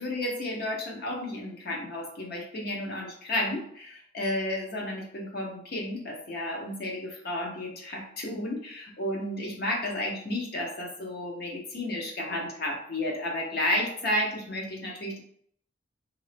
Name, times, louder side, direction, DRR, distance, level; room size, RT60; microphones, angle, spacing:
voice 1, 0.0-15.2, left 1 dB, 55° left, -1 dB, 0.8 m, -32 dB
3.0 x 2.7 x 3.2 m, 0.64 s
head